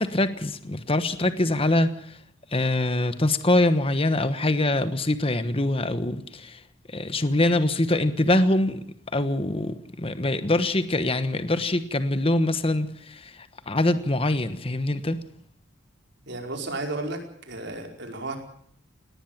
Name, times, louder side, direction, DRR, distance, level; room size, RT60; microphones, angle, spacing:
voice 1, 0.0-2.2 2.5-6.6 6.9-8.8 9.1-15.2, left 1 dB, 30° left, 1.2 m, -24 dB
voice 2, 16.3-17.2 17.5-18.4, right 2 dB, 60° right, 5.0 m, -32 dB
19.5 x 19.0 x 7.4 m
head